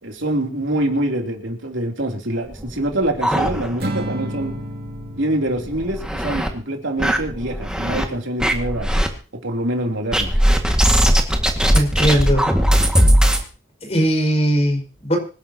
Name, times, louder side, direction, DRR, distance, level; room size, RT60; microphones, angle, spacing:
voice 1, 0.0-4.5 5.1-8.9 9.4-10.3, right 1 dB, 75° right, 2 dB, 3.3 m, -25 dB
sound 1, 2.5-4.1 4.4-4.5 4.9-5.0 5.6-6.5 7.0-8.1 8.4-9.1 10.1-13.4, equal, 5° right, 2.0 m, -18 dB
Acoustic guitar / Strum, 3.8-7.1, right 1 dB, 55° right, 2.5 m, -32 dB
voice 2, 11.7-12.5 13.8-15.2, equal, 35° left, 3 dB, 5.2 m, -19 dB
26.0 x 11.5 x 2.9 m, 0.36 s
head